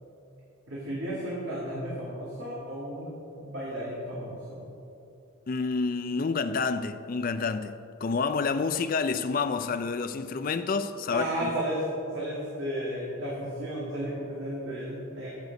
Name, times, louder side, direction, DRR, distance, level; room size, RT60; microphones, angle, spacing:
voice 1, 0.7-3.1 3.4-4.6 11.1-15.3, equal, 60° right, 2.0 m, -33 dB
voice 2, 5.5-11.5, left 4 dB, 40° left, 0.4 m, -29 dB
15.0 x 6.7 x 4.0 m
head